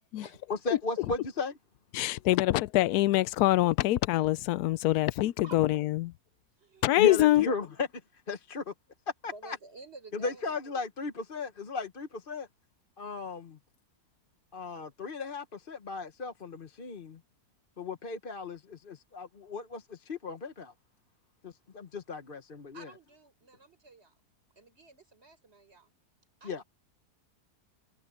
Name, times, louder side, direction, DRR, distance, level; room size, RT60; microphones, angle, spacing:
voice 1, 0.5-1.6 7.0-7.9 8.3-8.7 9.2-9.6 10.1-12.5 13.0-13.6 14.5-17.2 17.8-20.7 21.4-22.9 26.4-26.6, left 3 dB, 40° left, 1.2 m, -36 dB
voice 2, 1.9-6.1 6.8-7.5, left 16 dB, 80° left, 1.1 m, -25 dB
voice 3, 6.6-7.1 9.2-10.6 22.7-24.2 24.6-25.9 26.4-26.6, right 3 dB, 40° right, 4.8 m, -52 dB
omnidirectional pair, 1.6 m